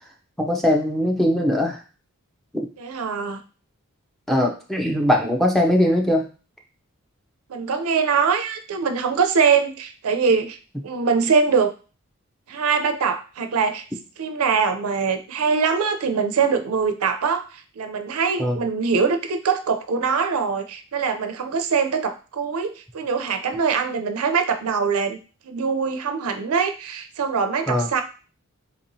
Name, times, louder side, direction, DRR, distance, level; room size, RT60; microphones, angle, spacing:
voice 1, 0.4-1.8 4.3-6.3 18.4-18.6 27.7-27.9, left 1 dB, ahead, 1 dB, 0.5 m, -20 dB
voice 2, 2.8-3.4 7.5-10.6 10.8-11.7 12.5-13.9 14.2-25.2 25.4-28.0, right 5 dB, 80° right, 7 dB, 0.5 m, -23 dB
4.1 x 2.9 x 2.6 m, 0.36 s
head